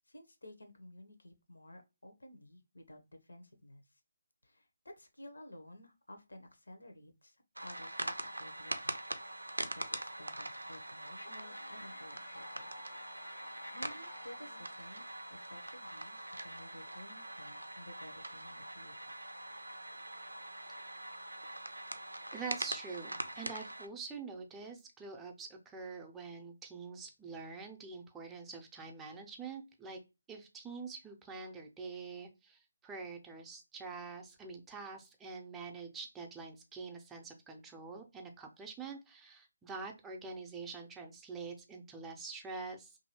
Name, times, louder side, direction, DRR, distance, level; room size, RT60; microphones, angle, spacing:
voice 1, 0.0-3.8 4.4-8.9 9.7-12.7 13.7-15.0 15.3-18.9, left 1 dB, 80° left, 6 dB, 0.8 m, -54 dB
sound 1, 7.6-23.9, right 1 dB, 90° right, 0.4 m, -43 dB
sound 2, 11.2-15.4, left 3 dB, 55° left, 0.4 m, -55 dB
voice 2, 22.3-30.0 30.3-43.0, right 4 dB, 10° right, 2 dB, 0.5 m, -46 dB
2.7 x 2.6 x 2.8 m, 0.26 s
figure-of-eight pair, 150°, 0 cm